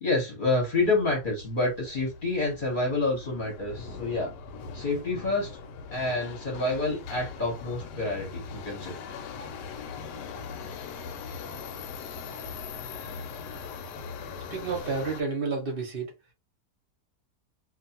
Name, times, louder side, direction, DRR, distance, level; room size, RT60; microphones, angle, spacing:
voice 1, 0.0-4.3 4.7-5.6 5.9-8.9, left 2 dB, 35° left, 0.9 m, -28 dB
Subway metro underground, 0.7-15.2, left 5 dB, 80° left, 1.2 m, -40 dB
voice 2, 14.5-16.1, right 4 dB, 45° right, 0.8 m, -30 dB
2.6 x 2.4 x 2.7 m
omnidirectional pair, 1.8 m